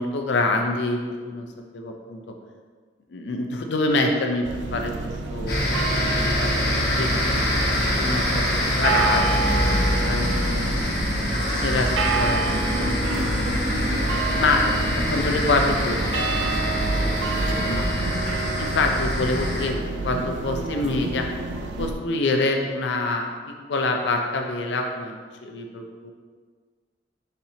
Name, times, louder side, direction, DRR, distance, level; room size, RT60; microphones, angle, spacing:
voice 1, 0.0-1.5 1.7-2.2 3.1-4.5 4.7-5.8 6.2-7.3 8.0-10.8 11.6-13.5 14.4-18.0 18.6-21.3 21.8-23.3 23.7-26.1, left 2 dB, 75° left, 3 dB, 0.5 m, -26 dB
sound 1, 4.4-21.9, right 2 dB, 80° right, 0.4 m, -28 dB
sound 2, 5.5-19.7, left 1 dB, 60° left, 1.1 m, -25 dB
4.3 x 4.1 x 2.8 m, 1.5 s
head